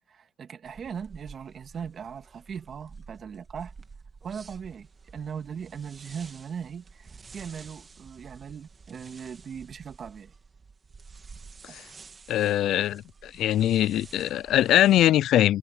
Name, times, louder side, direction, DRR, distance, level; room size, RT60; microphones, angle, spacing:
voice 1, 0.1-3.7 4.2-10.3 11.7-11.8, right 7 dB, 55° right, 2.2 m, -39 dB
sound 1, 0.6-15.1, right 5 dB, 35° right, 2.3 m, -50 dB
voice 2, 12.3-15.6, left 13 dB, 80° left, 0.3 m, -22 dB
cardioid pair, 90°, 0 cm